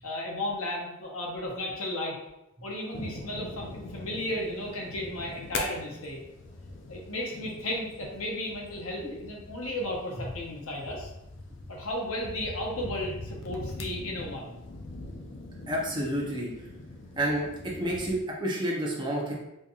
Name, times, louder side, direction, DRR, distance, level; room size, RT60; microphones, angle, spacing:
voice 1, 0.0-2.2 2.6-6.2 6.9-11.1 11.7-14.6, left 1 dB, 85° left, -2 dB, 1.0 m, -34 dB
sound 1, 2.9-18.2, left 2 dB, 55° left, 0.5 m, -42 dB
voice 2, 15.7-16.5 17.2-19.3, right 1 dB, 20° right, -3 dB, 0.8 m, -30 dB
4.2 x 3.2 x 2.4 m, 0.90 s
head